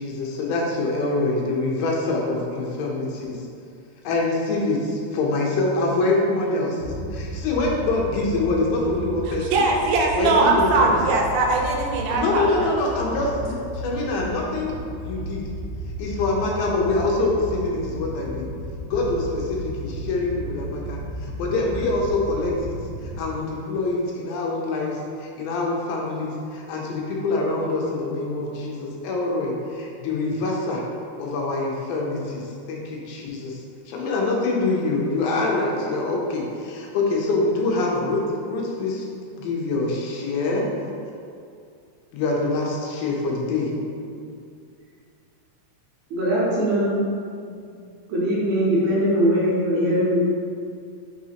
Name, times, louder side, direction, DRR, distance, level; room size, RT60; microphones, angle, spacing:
voice 1, 0.0-3.4 4.0-9.5 10.1-11.0 12.1-15.5 16.0-18.5 18.8-21.0 21.4-30.8 31.2-33.6 33.9-39.1 39.3-40.7 42.1-43.7 47.5-47.6, left 2 dB, 90° left, -1 dB, 2.4 m, -25 dB
sound 1, 6.8-23.3, equal, 75° left, 1.5 m, -34 dB
voice 2, 9.3-12.8, right 3 dB, 90° right, 0 dB, 2.3 m, -21 dB
voice 3, 46.1-47.1 48.1-50.3, equal, 70° right, -7 dB, 1.9 m, -21 dB
5.9 x 2.8 x 2.8 m, 2.4 s
omnidirectional pair, 3.9 m